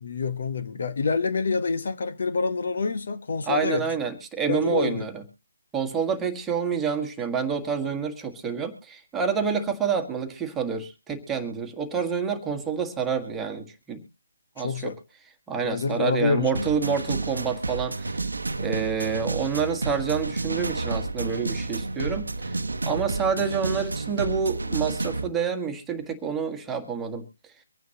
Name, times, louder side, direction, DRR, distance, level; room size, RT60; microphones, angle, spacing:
voice 1, 0.0-3.9 4.4-5.1 14.6-15.0 15.6-16.6, left 4 dB, 55° left, 1.3 m, -27 dB
voice 2, 3.5-5.2 5.7-14.0 14.6-14.9 15.5-18.2 18.6-22.6 22.8-27.2, right 6 dB, 10° right, 1.6 m, -28 dB
sound 1, 16.5-25.3, right 3 dB, 80° right, 0.9 m, -30 dB
24.5 x 9.3 x 2.9 m
figure-of-eight pair, 150°, 0 cm